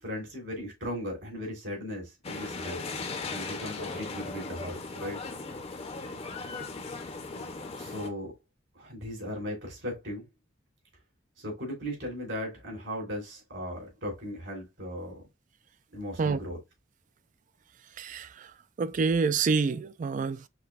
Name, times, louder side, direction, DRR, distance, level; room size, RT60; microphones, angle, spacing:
voice 1, 0.0-2.9 3.3-5.2 7.8-8.3 8.7-10.2 11.4-15.2 15.9-16.6, equal, 70° right, 3.3 m, -37 dB
sound 1, 2.2-8.1, left 3 dB, 30° left, 0.6 m, -38 dB
voice 2, 18.0-18.5 18.8-20.4, right 4 dB, 40° right, 0.3 m, -27 dB
5.9 x 3.3 x 2.3 m
head